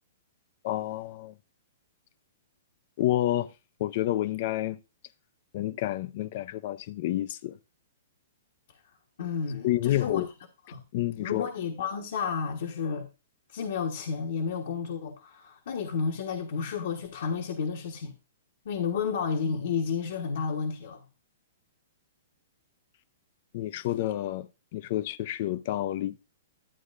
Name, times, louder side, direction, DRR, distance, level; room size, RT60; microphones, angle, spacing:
voice 1, 0.6-1.3 3.0-3.5 3.8-4.8 5.5-7.6 9.6-10.3 10.9-11.5 23.5-24.5 24.7-26.2, left 14 dB, 50° left, 0.5 m, -29 dB
voice 2, 9.2-10.3 10.7-10.8 11.2-13.1 13.5-18.1 18.6-21.0, left 6 dB, 70° left, 1.2 m, -31 dB
11.5 x 8.4 x 2.5 m
hypercardioid pair, 150°, 0 cm